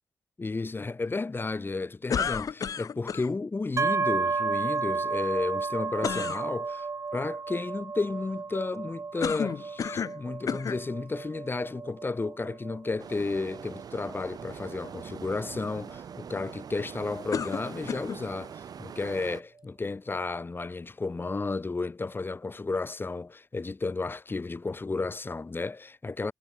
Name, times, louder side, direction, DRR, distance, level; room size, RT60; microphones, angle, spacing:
voice 1, 0.4-26.3, left 3 dB, 30° left, 1.3 m, -33 dB
sound 1, 2.1-3.3 6.0-6.4 9.2-10.2 10.5-10.8 11.6-11.7 17.3-18.2, left 7 dB, 60° left, 0.5 m, -31 dB
sound 2, 3.8-17.5, right 4 dB, 45° right, 1.3 m, -33 dB
sound 3, 13.0-19.4, right 8 dB, 70° right, 0.9 m, -43 dB
cardioid pair, 70°, 7 cm